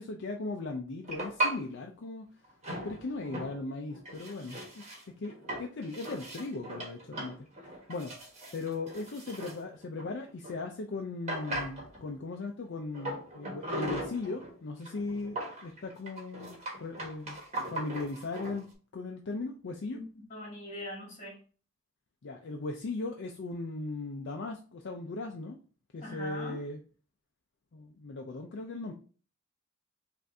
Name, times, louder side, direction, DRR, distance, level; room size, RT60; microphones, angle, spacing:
voice 1, 0.0-2.3 2.8-4.8 5.2-7.4 7.7-8.1 8.5-17.4 17.7-18.7 18.9-20.0 22.2-25.6 25.9-26.8 27.7-28.9, left 3 dB, 60° left, 0.5 m, -38 dB
sound 1, 1.0-1.6 2.6-3.6 3.9-10.6 10.9-11.0 11.3-12.1 12.9-14.5 14.9-18.6, right 1 dB, 35° right, 1.3 m, -38 dB
voice 2, 20.3-21.4 26.0-26.6, left 1 dB, 35° left, 2.2 m, -41 dB
5.4 x 2.6 x 2.6 m
head